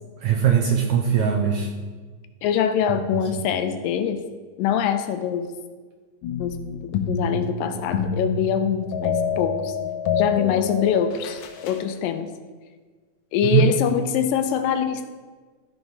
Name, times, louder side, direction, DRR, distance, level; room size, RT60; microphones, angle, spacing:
voice 1, 0.2-1.7 3.1-3.4 13.4-13.7, right 8 dB, 75° right, 2 dB, 1.7 m, -21 dB
voice 2, 2.4-4.2 4.6-5.5 6.4-6.6 6.8-9.7 10.1-12.3 13.3-15.1, left 9 dB, 90° left, 8 dB, 2.4 m, -24 dB
sound 1, 6.2-11.9, left 5 dB, 75° left, 2.2 m, -27 dB
13.5 x 4.7 x 5.3 m, 1.4 s
omnidirectional pair, 4.0 m